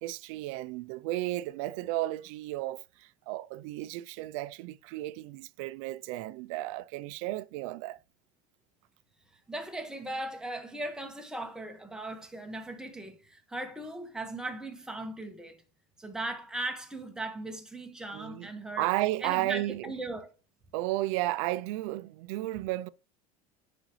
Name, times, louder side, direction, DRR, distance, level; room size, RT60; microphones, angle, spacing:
voice 1, 0.0-8.0 18.1-18.5 18.8-19.9 20.7-22.9, right 17 dB, 70° right, 0.4 m, -33 dB
voice 2, 9.5-15.6 16.0-18.9 19.2-20.3, right 2 dB, 5° right, 1.4 m, -38 dB
10.0 x 5.0 x 3.1 m
supercardioid pair, 140°, 18 cm